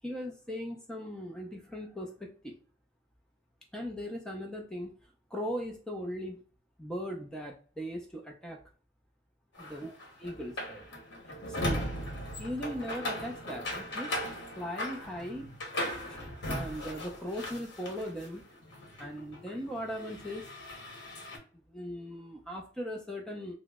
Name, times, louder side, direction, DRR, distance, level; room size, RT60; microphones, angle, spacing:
voice 1, 0.0-2.6 3.7-5.0 5.3-6.4 6.8-8.6 9.6-9.9 10.2-10.9 11.3-11.9 12.4-14.2 14.6-15.5 16.1-16.2 16.5-18.5 19.0-20.5 21.7-23.5, equal, 5° left, 0 dB, 0.4 m, -39 dB
sound 1, 9.6-18.3 18.6-21.4, left 1 dB, 65° left, 1.0 m, -38 dB
3.0 x 2.0 x 3.4 m, 0.40 s
head